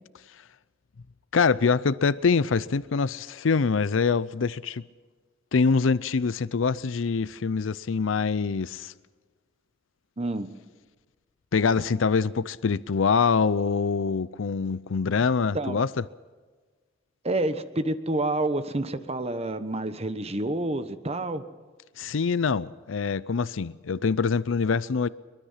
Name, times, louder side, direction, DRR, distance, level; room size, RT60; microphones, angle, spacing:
voice 1, 1.3-4.8 5.5-8.9 11.5-15.9 22.0-25.1, left 5 dB, 80° left, 0.5 m, -24 dB
voice 2, 10.2-10.5 15.5-15.8 17.2-21.4, right 2 dB, 35° right, 1.2 m, -28 dB
23.5 x 23.0 x 5.8 m
head